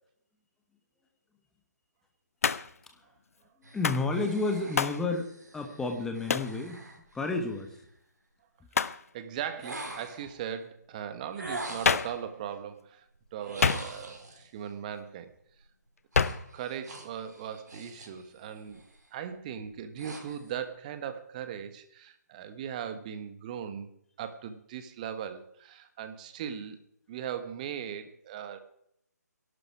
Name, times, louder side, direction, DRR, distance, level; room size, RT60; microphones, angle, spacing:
Hands, 2.4-2.8 3.8-4.1 4.8-5.0 6.3-6.6 8.7-9.0 11.8-12.2 13.6-14.2 16.1-16.5, left 6 dB, 55° left, 0.7 m, -27 dB
sound 1, 3.6-7.8 9.6-10.4 11.4-12.2 13.4-14.5 16.1-18.2 18.6-19.0 19.5-20.6, right 2 dB, 70° right, 4.1 m, -44 dB
voice 1, 3.7-6.8 7.1-7.8, left 3 dB, 5° left, 5 dB, 1.4 m, -31 dB
voice 2, 8.8-13.0 13.3-15.3 16.5-18.8 19.1-23.9 24.2-26.8 27.1-28.6, right 8 dB, 25° right, 10 dB, 1.3 m, -39 dB
19.5 x 11.5 x 4.8 m, 0.73 s
figure-of-eight pair, 150°, 10 cm